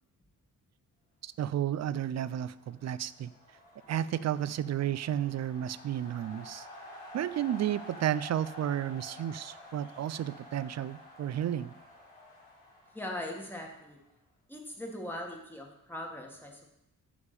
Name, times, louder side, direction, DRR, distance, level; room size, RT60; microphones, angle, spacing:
voice 1, 1.2-3.3 3.9-6.7 7.1-11.7, right 11 dB, 50° right, 17 dB, 0.4 m, -32 dB
sound 1, 2.1-14.1, left 1 dB, 25° left, 3.2 m, -50 dB
voice 2, 12.9-14.0 14.5-16.7, left 1 dB, 5° left, 0 dB, 1.7 m, -40 dB
9.7 x 3.7 x 6.7 m, 0.84 s
cardioid pair, 95°, 34 cm